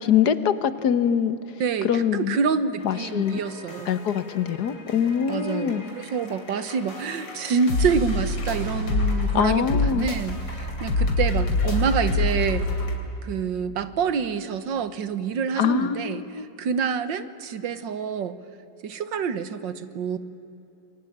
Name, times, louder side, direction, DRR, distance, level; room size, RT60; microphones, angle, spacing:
voice 1, 0.0-1.4 1.8-2.4 2.8-3.4 3.9-5.9 9.3-10.1 15.6-16.5, left 8 dB, 60° left, 13 dB, 1.6 m, -23 dB
voice 2, 1.6-3.9 5.3-12.7 13.2-16.2 16.6-18.4 18.8-20.2, right 6 dB, 80° right, 13 dB, 1.9 m, -27 dB
sound 1, 2.8-13.0, left 2 dB, 90° left, 3.7 m, -28 dB
28.0 x 22.5 x 8.8 m, 2.9 s
omnidirectional pair, 2.0 m